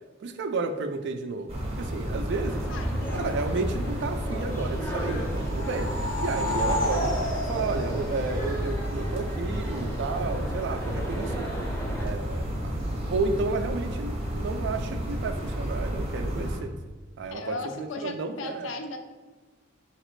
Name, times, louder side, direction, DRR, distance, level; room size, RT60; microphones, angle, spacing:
voice 1, 0.2-2.6 3.1-5.9 6.2-7.2 7.5-11.5 12.0-16.7 17.2-18.7, right 3 dB, 60° right, 8 dB, 0.3 m, -32 dB
sound 1, 1.5-16.6, equal, 30° right, 0.7 m, -31 dB
sound 2, 2.3-12.1, equal, 10° left, 0.6 m, -39 dB
voice 2, 2.7-3.4 17.3-19.0, left 3 dB, 70° left, 5 dB, 0.5 m, -36 dB
sound 3, 5.4-8.9, left 1 dB, 90° left, 1.1 m, -31 dB
4.0 x 2.9 x 3.1 m, 1.3 s
head